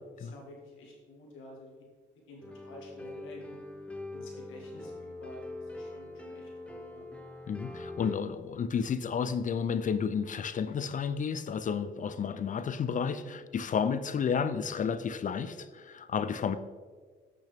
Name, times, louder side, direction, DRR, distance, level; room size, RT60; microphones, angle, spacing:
voice 1, 0.2-1.7 2.3-3.6 4.1-7.0 13.1-13.4, left 1 dB, 90° left, -2 dB, 1.8 m, -50 dB
sound 1, 2.4-8.2, left 2 dB, 5° left, 0.8 m, -43 dB
voice 2, 7.5-16.6, left 6 dB, 40° left, 12 dB, 0.4 m, -31 dB
8.0 x 6.2 x 3.5 m, 1.5 s
cardioid pair, 90°, 20 cm